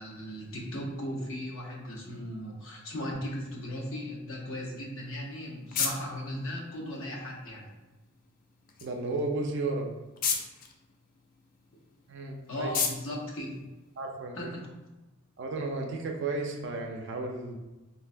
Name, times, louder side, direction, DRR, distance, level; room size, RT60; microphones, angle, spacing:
voice 1, 0.0-7.7 12.5-13.7 14.3-14.7, equal, 75° left, -2 dB, 0.7 m, -37 dB
sound 1, 5.0-14.4, left 6 dB, 40° left, 0.3 m, -38 dB
voice 2, 8.8-9.9 12.1-12.7 14.0-14.5 15.4-17.6, right 3 dB, 60° right, 2 dB, 0.4 m, -33 dB
3.8 x 2.1 x 2.5 m, 1.1 s
head